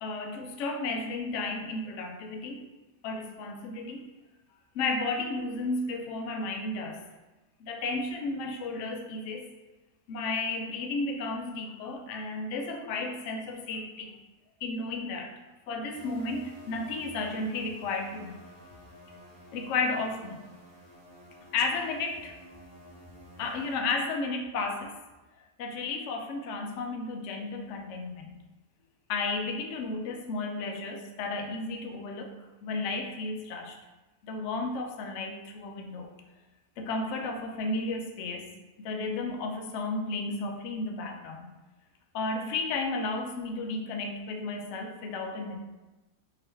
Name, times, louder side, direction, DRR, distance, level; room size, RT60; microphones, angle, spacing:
voice 1, 0.0-2.6 3.0-4.1 4.7-7.0 7.6-9.5 10.1-14.1 14.6-15.3 15.7-18.4 19.5-20.4 21.5-22.4 23.4-24.9 25.6-28.4 29.1-32.3 32.6-33.8 34.2-36.1 36.8-38.5 38.8-41.5 42.1-45.6, left 3 dB, 75° left, 3 dB, 0.6 m, -33 dB
sound 1, 15.9-23.8, equal, 25° right, 0.4 m, -51 dB
3.7 x 2.8 x 3.3 m, 1.1 s
omnidirectional pair, 1.8 m